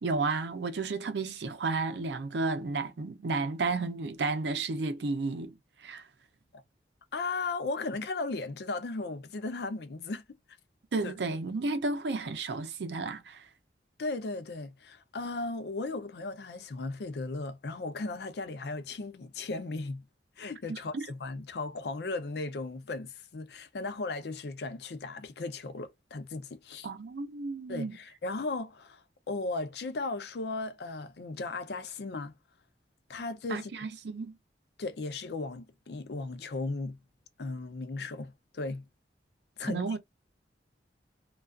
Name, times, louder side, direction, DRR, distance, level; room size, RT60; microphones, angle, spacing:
voice 1, 0.0-6.1 10.9-13.5 20.7-21.1 26.8-28.0 33.5-34.3 39.6-40.0, right 3 dB, 75° right, 0.5 m, -32 dB
voice 2, 7.1-10.2 11.0-11.1 14.0-20.0 20.4-26.9 27.7-32.3 33.1-33.7 34.8-37.0 37.4-38.8 39.6-39.8, left 3 dB, 65° left, 0.5 m, -36 dB
2.3 x 2.3 x 2.3 m
head